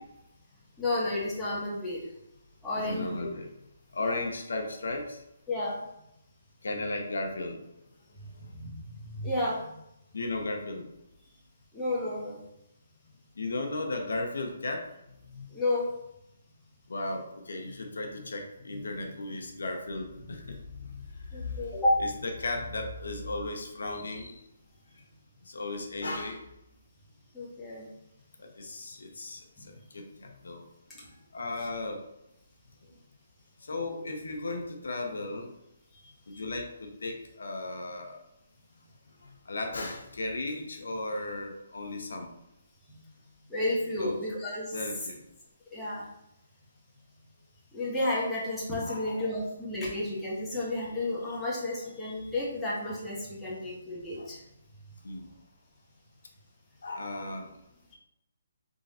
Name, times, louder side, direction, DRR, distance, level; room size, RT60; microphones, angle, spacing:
voice 1, 0.8-2.0 2.6-3.3 4.1-4.2 5.5-5.8 8.4-8.9 9.1-9.7 11.7-12.4 15.5-15.8 21.3-21.9 27.3-27.9 29.6-29.7 42.9-43.0 43.5-44.8 45.7-46.1 47.7-54.4, left 1 dB, 5° left, -8 dB, 1.2 m, -31 dB
voice 2, 2.7-3.5 3.9-5.2 6.6-7.6 10.1-10.9 13.4-14.9 15.3-15.5 16.9-20.6 20.9-21.0 22.0-24.4 25.5-26.4 28.6-29.4 29.9-30.6 31.3-32.0 33.7-35.5 36.3-38.2 39.5-42.3 44.0-44.2 44.7-45.2 48.8-49.3 51.3-51.4 54.2-54.3 55.0-55.3 56.8-57.5, left 2 dB, 80° left, 3 dB, 0.9 m, -35 dB
3.7 x 3.3 x 4.1 m, 0.83 s
hypercardioid pair, 165°, 0 cm